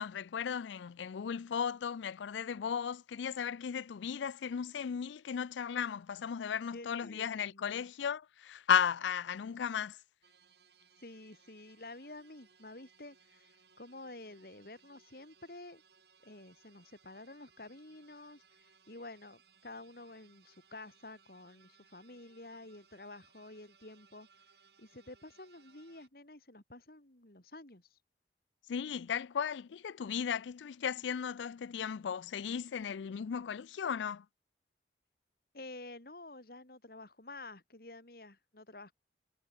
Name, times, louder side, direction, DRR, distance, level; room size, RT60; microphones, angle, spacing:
voice 1, 0.0-10.0 28.7-34.2, left 7 dB, 85° left, 0.4 m, -35 dB
voice 2, 6.7-7.9 11.0-15.8 16.2-24.3 24.8-28.0 35.5-38.9, left 2 dB, 55° left, 2.6 m, -50 dB
sound 1, 10.2-26.1, right 6 dB, 65° right, 7.5 m, -66 dB
head